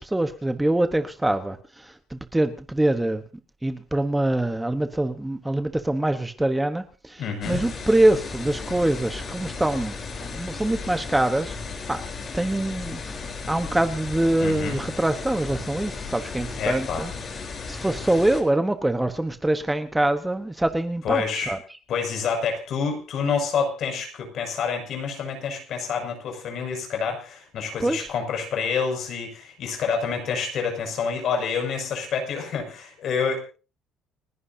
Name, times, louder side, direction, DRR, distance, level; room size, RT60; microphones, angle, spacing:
voice 1, 0.0-3.2 3.6-10.0 10.2-11.5 11.9-12.0 12.3-17.1 17.7-21.6 27.8-28.1, right 1 dB, 5° right, 8 dB, 1.1 m, -24 dB
voice 2, 7.2-7.6 14.4-14.8 16.6-17.1 21.0-21.5 21.9-33.4, left 5 dB, 50° left, 4 dB, 6.4 m, -28 dB
sound 1, 7.4-18.4, left 4 dB, 30° left, 3.9 m, -35 dB
30.0 x 11.0 x 2.8 m, 0.34 s
cardioid pair, 145°, 0 cm